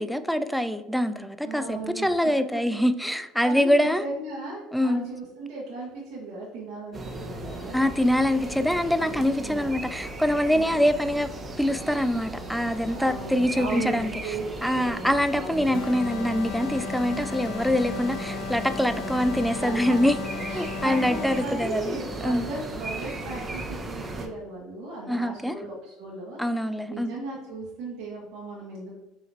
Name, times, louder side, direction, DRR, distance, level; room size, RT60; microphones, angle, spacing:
voice 1, 0.0-4.0 4.7-5.1 7.7-11.3 11.6-14.1 14.6-20.1 20.5-22.0 22.2-22.4 25.1-25.6 26.4-27.1, equal, ahead, 10 dB, 0.3 m, -24 dB
voice 2, 1.4-2.6 3.0-7.8 9.0-9.7 10.5-10.7 12.9-14.5 14.7-15.7 19.6-19.7 20.5-26.4 26.9-28.9, right 3 dB, 65° right, -4 dB, 0.9 m, -37 dB
sound 1, 6.9-24.3, right 2 dB, 25° right, 0.7 m, -37 dB
sound 2, 15.7-21.6, left 5 dB, 70° left, 0.4 m, -35 dB
4.8 x 3.0 x 2.6 m, 1.0 s
hypercardioid pair, 75°, 0 cm